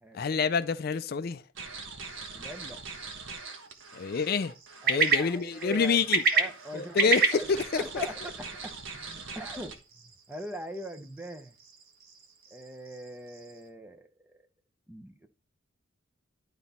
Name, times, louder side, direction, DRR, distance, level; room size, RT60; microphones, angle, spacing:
voice 1, 0.1-1.4 3.9-4.5 4.9-6.2 6.7-7.2 7.5-8.1, left 5 dB, 50° left, 0.4 m, -27 dB
sound 1, 1.6-9.8, right 4 dB, 70° right, 1.3 m, -43 dB
sound 2, 2.0-13.7, right 4 dB, 45° right, 1.4 m, -33 dB
voice 2, 2.3-2.8 4.8-6.0 6.3-7.5 7.7-11.5 12.5-14.1 14.9-15.3, right 1 dB, 10° right, 0.8 m, -42 dB
11.5 x 4.0 x 4.2 m
head